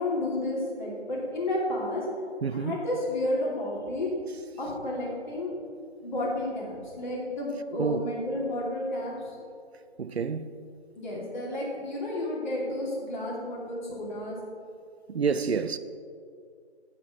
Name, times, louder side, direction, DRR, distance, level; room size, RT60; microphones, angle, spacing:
voice 1, 0.0-2.1 2.5-4.2 4.6-5.5 6.0-9.4 10.9-14.4, left 1 dB, 40° left, 2.7 m, -31 dB
voice 2, 2.4-2.8 7.8-8.0 10.0-10.5 15.1-15.8, right 5 dB, 65° right, 0.5 m, -28 dB
14.0 x 6.5 x 3.6 m
figure-of-eight pair, 155°, 34 cm